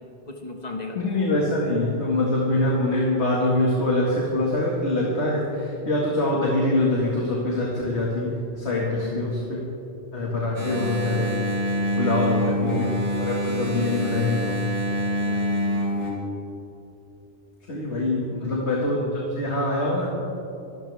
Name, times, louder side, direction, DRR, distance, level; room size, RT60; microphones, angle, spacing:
voice 1, 0.3-1.0 8.9-9.3 10.5-10.6 15.2-15.9 18.2-18.6, left 3 dB, 40° left, 1 dB, 1.8 m, -38 dB
voice 2, 1.0-9.7 10.1-11.5 12.0-14.7 17.7-20.1, left 2 dB, 80° left, -3 dB, 2.3 m, -24 dB
Engine, 10.5-16.1, equal, 65° right, 3.7 m, -26 dB
24.0 x 13.5 x 3.5 m, 2.9 s
omnidirectional pair, 1.1 m